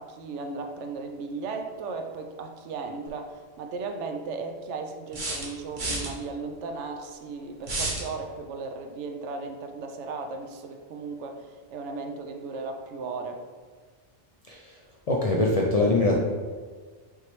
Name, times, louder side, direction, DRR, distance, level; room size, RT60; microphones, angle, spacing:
voice 1, 0.0-13.4, right 4 dB, 80° right, 5 dB, 0.9 m, -36 dB
sound 1, 3.1-3.2 5.1-6.1 7.6-8.1, right 2 dB, 45° right, 1.0 m, -30 dB
voice 2, 15.1-16.2, left 2 dB, 60° left, -2 dB, 0.4 m, -23 dB
5.7 x 3.1 x 3.0 m, 1.5 s
omnidirectional pair, 1.2 m